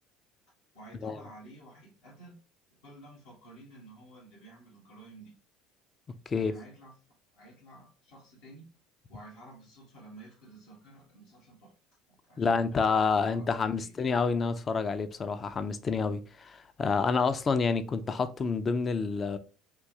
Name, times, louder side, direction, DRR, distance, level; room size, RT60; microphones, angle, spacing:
voice 1, 0.7-2.4 2.8-5.4 6.3-7.0 7.3-8.7 9.1-11.7 12.1-13.0 13.3-13.5 13.8-13.9, right 2 dB, 80° left, 1.4 m, -52 dB
voice 2, 12.4-19.4, left 5 dB, 35° left, 0.4 m, -28 dB
3.7 x 2.6 x 2.8 m
hypercardioid pair, 75°, 0 cm